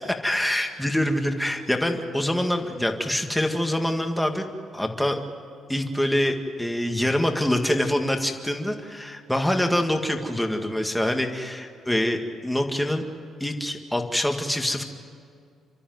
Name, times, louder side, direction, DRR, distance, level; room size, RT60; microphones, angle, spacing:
voice 1, 0.0-4.5 4.7-5.2 5.7-13.0 13.4-14.8, left 1 dB, 5° left, 3 dB, 1.9 m, -25 dB
30.0 x 13.5 x 9.4 m, 2.3 s
cardioid pair, 140°, 0 cm